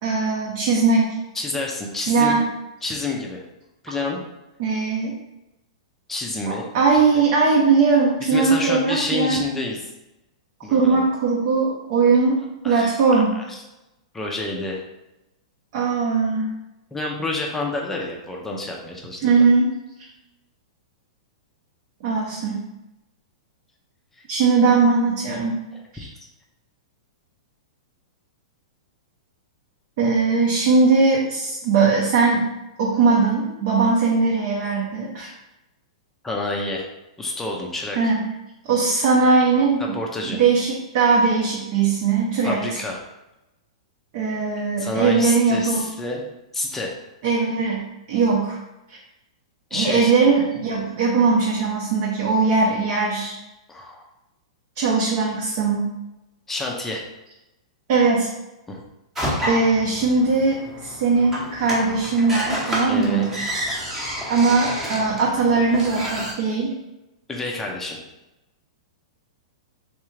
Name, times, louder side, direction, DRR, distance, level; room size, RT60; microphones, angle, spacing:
voice 1, 0.0-1.1 2.1-2.5 4.6-5.2 6.5-9.4 10.7-13.3 15.7-16.5 19.2-19.7 22.0-22.6 24.3-25.6 25.9-26.1 30.0-32.5 32.8-35.3 38.0-38.2 38.7-40.0 40.2-42.6 44.1-45.8 47.2-47.8 48.1-48.6 48.9-49.0 49.7-53.3 54.8-55.9 57.9-58.3 59.4-63.3 64.3-66.7, right 4 dB, 50° right, -3 dB, 0.7 m, -20 dB
voice 2, 1.3-2.3 2.8-3.4 3.8-4.2 6.1-6.7 8.2-9.9 10.6-11.1 12.6-12.9 13.3-13.4 14.1-14.8 16.9-19.3 36.2-36.9 37.2-38.1 39.8-40.4 42.4-43.0 44.8-46.2 46.5-46.9 49.7-50.1 53.7-54.0 56.5-57.0 58.7-58.8 62.9-63.4 67.3-68.0, left 2 dB, 10° left, -1 dB, 0.5 m, -28 dB
sound 1, 59.2-66.3, equal, 10° right, 0.9 m, -29 dB
3.5 x 3.3 x 3.2 m, 0.95 s
hypercardioid pair, 150°, 3 cm